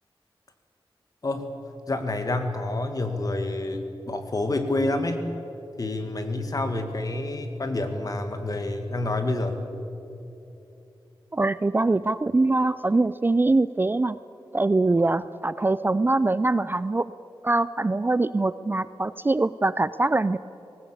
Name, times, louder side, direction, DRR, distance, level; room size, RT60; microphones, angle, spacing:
voice 1, 1.2-1.5 1.9-5.2 5.8-9.6, left 2 dB, 40° left, 6 dB, 2.0 m, -28 dB
voice 2, 11.3-14.2 14.5-17.1 17.4-20.4, right 2 dB, 25° right, 15 dB, 0.4 m, -23 dB
19.5 x 19.0 x 8.5 m, 2.9 s
wide cardioid pair, 120°, 9 cm